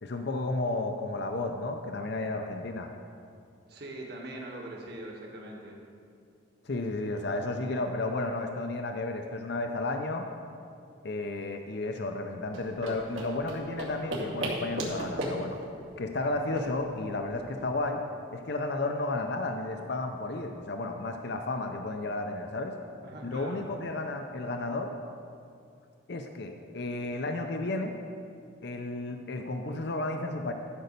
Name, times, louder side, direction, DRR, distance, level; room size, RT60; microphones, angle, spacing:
voice 1, 0.0-2.9 6.6-10.3 11.0-15.6 16.0-18.0 18.3-22.7 23.2-24.9 26.1-27.9 28.6-30.5, left 2 dB, 55° left, 5 dB, 0.6 m, -32 dB
voice 2, 3.7-5.8 23.0-23.7, right 1 dB, 55° right, -2 dB, 1.7 m, -42 dB
sound 1, 12.4-17.6, right 1 dB, 75° right, 2.2 m, -37 dB
13.0 x 5.4 x 6.8 m, 2.4 s
head